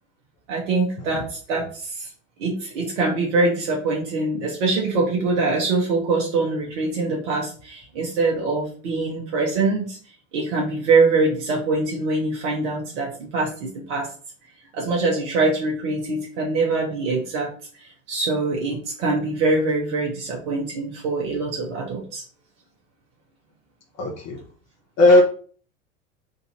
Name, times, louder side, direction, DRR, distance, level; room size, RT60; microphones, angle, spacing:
voice 1, 0.5-2.1 2.4-10.0 10.3-14.1 14.7-17.5 17.8-22.2, right 3 dB, 60° right, -2 dB, 1.2 m, -23 dB
voice 2, 24.0-24.4 25.0-25.2, left 1 dB, 40° left, -1 dB, 1.2 m, -15 dB
3.6 x 2.7 x 4.3 m, 0.44 s
figure-of-eight pair, 80°, 39 cm